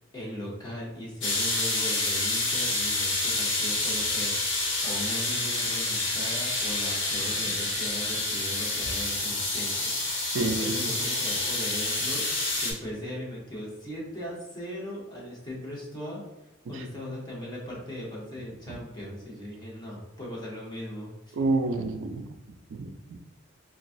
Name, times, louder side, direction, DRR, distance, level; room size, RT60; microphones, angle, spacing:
voice 1, 0.1-16.2 16.7-21.4, equal, 20° left, -4 dB, 0.9 m, -38 dB
sound 1, 1.2-12.7, left 2 dB, 75° left, 1.1 m, -28 dB
voice 2, 10.3-10.9 16.7-16.8 18.7-18.8 21.3-22.3 22.7-23.2, right 2 dB, 80° right, 6 dB, 0.3 m, -29 dB
3.9 x 2.3 x 2.5 m, 1.0 s
head